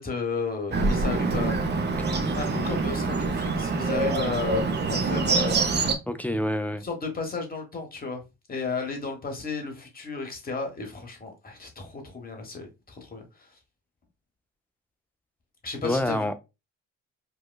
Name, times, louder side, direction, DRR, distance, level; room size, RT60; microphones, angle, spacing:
voice 1, 0.0-1.6 2.3-4.6 4.9-5.8 6.8-8.2 8.5-13.5 15.6-16.3, left 4 dB, 30° left, 1.2 m, -33 dB
Bird, 0.7-5.9, right 3 dB, 35° right, 0.6 m, -25 dB
voice 2, 6.1-6.8 15.8-16.3, left 1 dB, 5° left, 0.4 m, -27 dB
4.7 x 2.2 x 2.2 m
cardioid pair, 90°, 30 cm